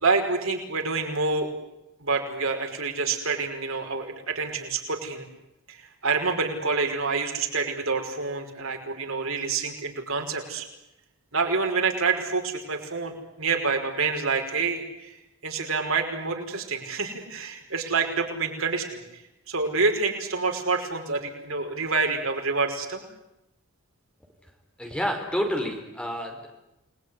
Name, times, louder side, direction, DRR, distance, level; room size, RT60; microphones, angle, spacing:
voice 1, 0.0-1.5 2.0-5.2 5.7-10.7 11.3-15.1 15.4-19.0 19.5-23.1, right 4 dB, 85° right, 3 dB, 5.4 m, -27 dB
voice 2, 24.8-26.5, equal, 5° left, 3 dB, 4.9 m, -29 dB
29.0 x 21.0 x 9.8 m, 0.93 s
head